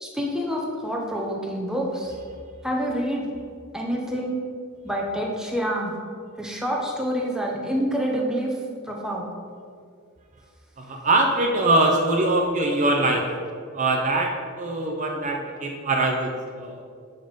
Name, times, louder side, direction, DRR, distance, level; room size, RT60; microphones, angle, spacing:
voice 1, 0.0-2.1 2.6-3.3 3.7-4.4 4.8-5.9 6.4-8.6 8.8-9.3, equal, 5° right, -1 dB, 0.9 m, -27 dB
voice 2, 10.8-13.3 13.7-16.8, right 2 dB, 35° right, 1 dB, 0.7 m, -23 dB
7.6 x 5.4 x 5.1 m, 2.2 s
head